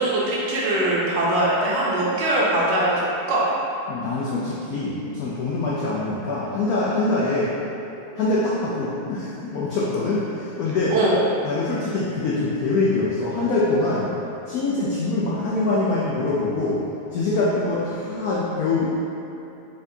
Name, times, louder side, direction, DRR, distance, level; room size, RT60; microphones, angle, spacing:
voice 1, 0.0-3.5 10.9-11.2, right 1 dB, 65° right, -6 dB, 1.2 m, -21 dB
voice 2, 3.9-7.5 8.2-11.0 11.4-14.1 14.5-16.8 17.1-19.1, left 2 dB, 80° left, -7 dB, 0.8 m, -24 dB
4.3 x 3.7 x 2.7 m, 2.9 s
omnidirectional pair, 2.2 m